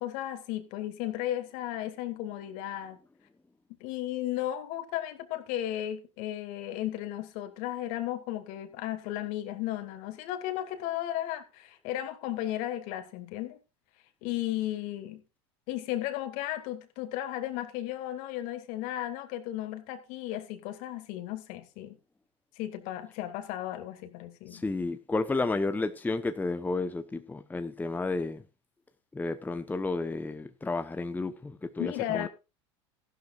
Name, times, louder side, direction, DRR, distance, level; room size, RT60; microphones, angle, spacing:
voice 1, 0.0-3.0 3.8-13.6 14.2-15.2 15.7-22.0 22.6-24.6 31.8-32.3, left 13 dB, 60° left, 2.4 m, -35 dB
voice 2, 24.5-28.4 29.1-32.3, left 3 dB, 10° left, 1.0 m, -32 dB
15.0 x 12.0 x 2.5 m
hypercardioid pair, 90°, 15 cm